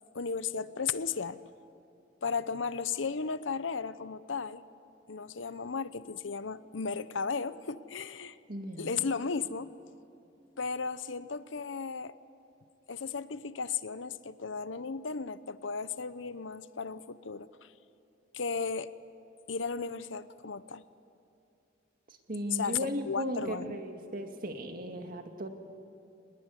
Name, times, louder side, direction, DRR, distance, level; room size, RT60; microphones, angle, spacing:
voice 1, 0.1-1.4 2.2-4.6 5.1-8.4 8.8-9.7 10.6-12.1 12.9-17.7 18.3-18.9 19.5-20.8 22.5-23.8, left 5 dB, 85° left, 14 dB, 0.8 m, -35 dB
voice 2, 8.5-9.0 22.3-25.5, equal, 50° right, 5 dB, 2.2 m, -36 dB
26.0 x 20.0 x 9.8 m, 2.6 s
head